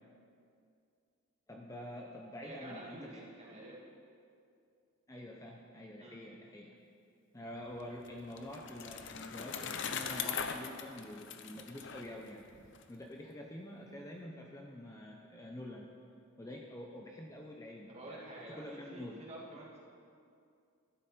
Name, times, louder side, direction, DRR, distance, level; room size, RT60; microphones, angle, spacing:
voice 1, 1.5-3.2 5.1-6.8 7.3-12.5 12.9-15.9 16.4-18.3 18.6-19.2, left 1 dB, 15° left, 0 dB, 0.6 m, -47 dB
voice 2, 2.4-3.8 6.0-6.2 17.9-19.8, right 1 dB, 30° right, -4 dB, 2.1 m, -48 dB
Bicycle, 7.8-12.8, left 6 dB, 55° left, 0.7 m, -41 dB
13.0 x 11.5 x 4.3 m, 2.4 s
head